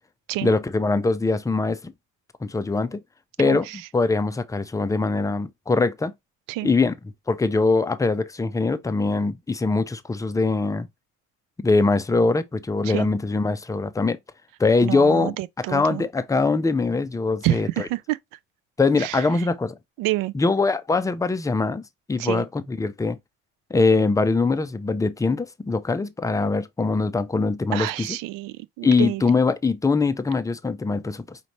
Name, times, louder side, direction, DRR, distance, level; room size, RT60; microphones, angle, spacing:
voice 1, 0.4-1.9 2.4-3.0 3.4-3.7 3.9-6.1 6.6-6.9 7.3-10.9 11.6-14.2 14.6-15.4 15.7-17.9 18.8-19.8 20.3-21.8 22.1-23.2 23.7-28.2 28.8-31.4, left 3 dB, 10° left, 0.5 m, -22 dB
voice 2, 3.4-3.8 6.5-6.7 12.8-13.1 14.8-16.0 17.4-18.2 19.0-19.2 20.0-20.3 22.2-22.4 27.7-29.2, right 16 dB, 55° right, 0.5 m, -28 dB
5.0 x 2.9 x 3.0 m
hypercardioid pair, 55°, 41 cm